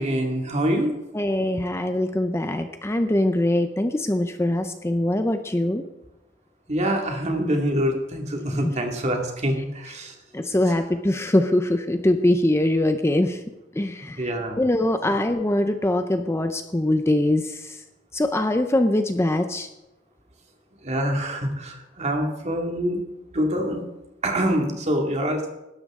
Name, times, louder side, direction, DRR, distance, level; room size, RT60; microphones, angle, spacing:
voice 1, 0.0-1.0 6.7-10.1 14.2-14.6 15.0-15.1 20.8-23.0 23.3-23.9 24.2-25.5, equal, 35° right, 2 dB, 2.3 m, -25 dB
voice 2, 1.1-5.8 8.6-8.7 10.3-13.4 13.7-14.3 14.6-17.8 18.1-19.7, left 1 dB, 15° left, 7 dB, 0.6 m, -22 dB
17.5 x 12.5 x 3.7 m, 0.95 s
head